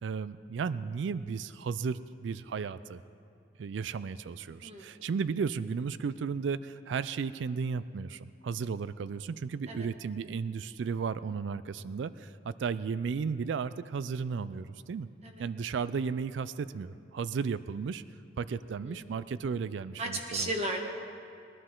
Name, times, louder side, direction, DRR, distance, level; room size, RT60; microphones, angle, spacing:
voice 1, 0.0-3.0 3.6-15.1 15.4-18.0 18.4-20.5, right 5 dB, 75° right, 15 dB, 0.4 m, -34 dB
voice 2, 4.6-5.0 9.7-9.9 15.2-15.4 18.7-19.0 20.0-20.8, right 1 dB, 35° right, 1 dB, 1.5 m, -35 dB
20.5 x 12.0 x 3.8 m, 2.6 s
head